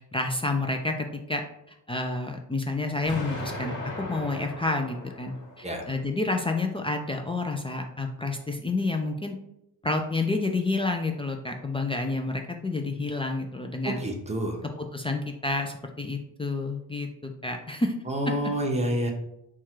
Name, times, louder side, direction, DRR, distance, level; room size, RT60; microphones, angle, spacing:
voice 1, 0.1-1.4 1.9-9.3 9.8-14.0 14.8-17.9, left 2 dB, 15° left, 3 dB, 0.3 m, -29 dB
Explosion, 3.1-6.1, left 1 dB, 55° left, 1.3 m, -37 dB
voice 2, 13.8-14.6 18.1-19.1, equal, 15° right, 2 dB, 0.8 m, -28 dB
4.5 x 2.4 x 4.4 m, 0.82 s
cardioid pair, 125°, 38 cm